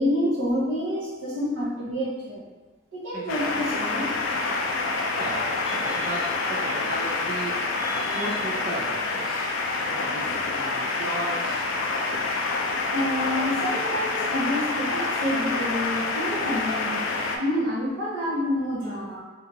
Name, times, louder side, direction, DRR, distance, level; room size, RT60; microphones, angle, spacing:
voice 1, 0.0-2.4 2.9-4.1 5.6-6.0 6.2-6.3 7.8-8.3 12.9-19.2, left 1 dB, 80° right, -7 dB, 1.0 m, -28 dB
voice 2, 3.1-3.5 5.2-7.7 8.1-9.5 9.8-11.7, right 1 dB, 50° right, -5 dB, 0.3 m, -35 dB
sound 1, 3.3-17.4, left 3 dB, 80° left, 0.4 m, -27 dB
2.7 x 2.4 x 2.7 m, 1.3 s
head